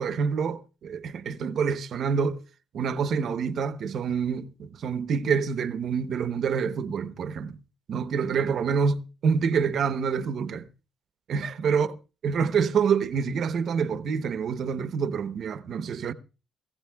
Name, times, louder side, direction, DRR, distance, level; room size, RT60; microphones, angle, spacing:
voice 1, 0.0-2.4 2.7-7.6 7.9-10.7 11.3-11.9 12.2-16.1, right 6 dB, 65° right, 0.9 m, -27 dB
21.5 x 15.0 x 2.3 m
cardioid pair, 90°, 0 cm